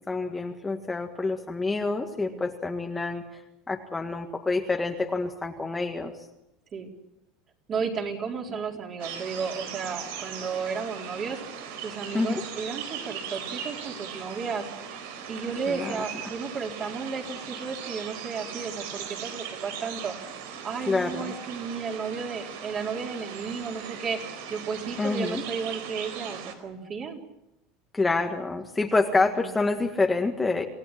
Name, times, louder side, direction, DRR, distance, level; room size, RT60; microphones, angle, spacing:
voice 1, 0.1-3.4 3.7-6.1 8.5-8.6 12.1-12.4 15.7-16.0 20.9-21.3 25.0-25.4 27.9-30.6, left 3 dB, 10° left, 3 dB, 1.7 m, -27 dB
voice 2, 7.7-11.4 11.8-14.7 15.3-20.1 20.6-24.2 24.5-27.2 29.1-29.5, right 5 dB, 30° right, 1 dB, 4.3 m, -33 dB
sound 1, 9.0-26.5, right 7 dB, 85° right, 4.3 m, -39 dB
28.0 x 17.0 x 10.0 m, 0.90 s
supercardioid pair, 145°, 0 cm